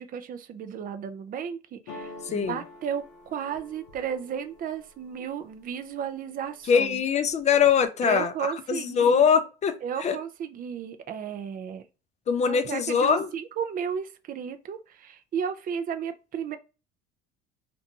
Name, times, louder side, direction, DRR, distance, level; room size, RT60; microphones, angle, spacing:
voice 1, 0.0-7.0 8.0-9.3 9.8-11.8 12.5-16.6, right 7 dB, 45° right, 0.5 m, -34 dB
sound 1, 1.9-5.7 6.2-6.8 7.1-7.9, left 2 dB, 85° left, 0.7 m, -47 dB
voice 2, 6.7-10.2 12.3-13.3, left 7 dB, 35° left, 0.4 m, -23 dB
2.6 x 2.2 x 2.7 m
supercardioid pair, 80°, 20 cm